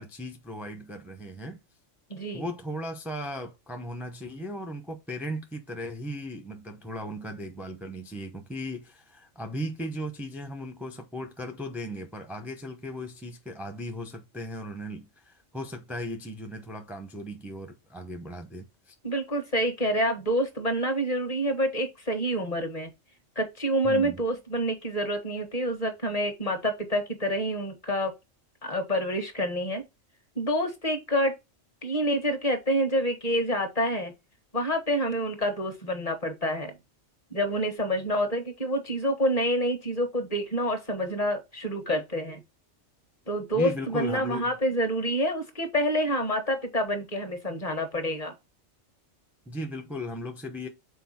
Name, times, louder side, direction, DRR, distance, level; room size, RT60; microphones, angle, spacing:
voice 1, 0.0-1.6 2.3-18.9 23.8-24.2 43.5-44.5 49.5-50.7, equal, ahead, 0.7 m, -37 dB
voice 2, 2.1-2.4 19.0-22.9 23.3-28.1 28.6-29.8 30.3-31.3 31.8-34.1 34.5-36.8 37.3-42.4 43.3-48.3, equal, 30° left, 1.6 m, -27 dB
6.3 x 4.4 x 4.3 m
omnidirectional pair, 1.3 m